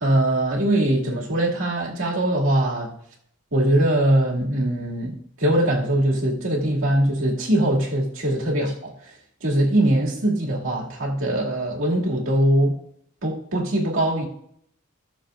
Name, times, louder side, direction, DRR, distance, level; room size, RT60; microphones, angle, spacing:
voice 1, 0.0-2.9 3.5-8.9 9.4-12.8 13.2-14.3, right 1 dB, 70° right, -3 dB, 2.3 m, -22 dB
17.5 x 6.9 x 2.5 m, 0.69 s
head